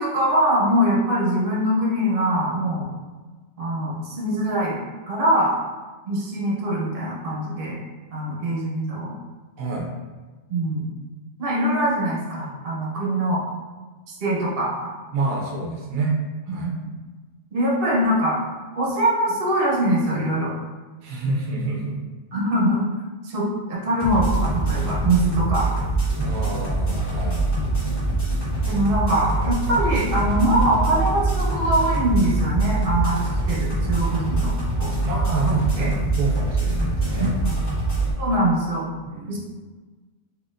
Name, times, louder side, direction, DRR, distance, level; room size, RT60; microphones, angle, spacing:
voice 1, 0.0-2.9 3.6-4.8 5.1-5.6 6.1-7.8 8.1-9.1 10.5-10.9 11.4-13.4 14.2-14.9 16.6-16.9 17.5-18.4 18.7-20.5 22.3-22.8 23.2-25.9 27.5-27.7 28.6-33.2 33.5-34.9 35.8-35.9 37.2-37.6 38.2-38.8 39.3-39.4, right 1 dB, 45° right, -4 dB, 1.0 m, -23 dB
voice 2, 9.6-9.9 15.1-16.2 16.5-16.7 21.0-22.0 26.2-27.5 35.0-37.4 39.0-39.4, right 3 dB, 80° right, -1 dB, 1.0 m, -27 dB
sound 1, 24.0-38.1, right 2 dB, 35° left, 1.5 m, -24 dB
4.1 x 2.9 x 2.5 m, 1.3 s
omnidirectional pair, 1.4 m